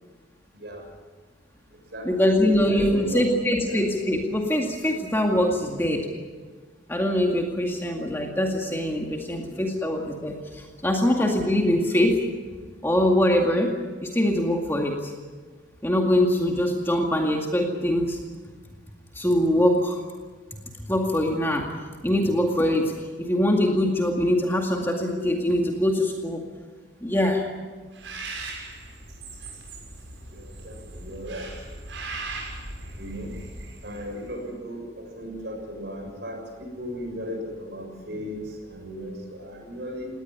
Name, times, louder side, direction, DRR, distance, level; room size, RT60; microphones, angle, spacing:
voice 1, 2.1-6.1 6.9-12.2 12.8-13.7 14.0-15.1 15.8-18.2 19.1-20.0 20.9-21.7 22.0-26.4 27.0-27.5, left 1 dB, 10° left, 1 dB, 2.2 m, -23 dB
voice 2, 2.7-3.8 5.5-5.6 9.3-9.4 30.3-31.5 33.0-33.3 33.8-40.1, equal, 55° right, 2 dB, 6.8 m, -36 dB
Bird, 27.9-34.3, right 2 dB, 80° right, 6.7 m, -39 dB
19.5 x 19.0 x 9.9 m, 1.4 s
head